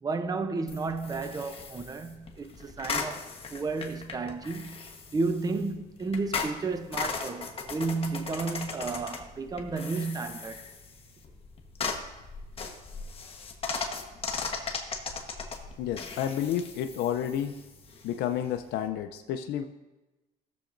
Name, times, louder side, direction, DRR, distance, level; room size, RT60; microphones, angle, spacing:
voice 1, 0.0-4.8 5.1-10.6, right 3 dB, 20° right, 0.7 m, -32 dB
sound 1, 0.7-18.9, left 4 dB, 35° left, 1.2 m, -38 dB
voice 2, 15.8-17.6 18.0-19.6, left 10 dB, 80° left, 0.5 m, -30 dB
17.0 x 6.9 x 2.6 m
cardioid pair, 110°, 17 cm